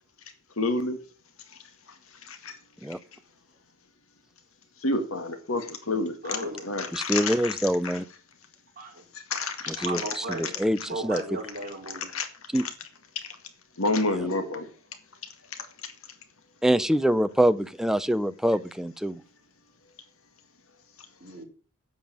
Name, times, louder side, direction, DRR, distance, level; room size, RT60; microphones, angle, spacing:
voice 1, 0.6-1.0 2.3-2.5 4.8-7.5 9.3-10.0 11.9-12.3 13.8-14.6, left 2 dB, 65° left, 2.0 m, -29 dB
voice 2, 6.2-6.7 8.8-9.0 9.6-10.5 10.8-12.1 14.2-14.5 21.2-21.5, right 2 dB, 40° right, 4.6 m, -36 dB
voice 3, 6.9-8.1 9.7-11.4 12.5-12.6 14.1-14.3 16.6-19.2, equal, ahead, 0.5 m, -25 dB
9.1 x 7.8 x 8.8 m
head